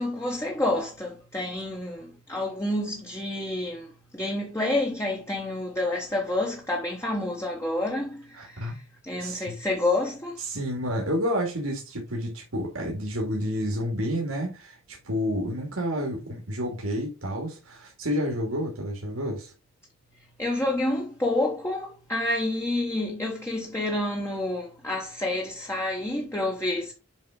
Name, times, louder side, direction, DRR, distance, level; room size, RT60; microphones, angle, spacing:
voice 1, 0.0-10.4 20.4-26.9, left 1 dB, 10° left, 1.0 m, -29 dB
voice 2, 8.3-8.8 9.2-9.5 10.4-19.5, equal, 80° right, 2.1 m, -30 dB
7.4 x 4.6 x 3.7 m
head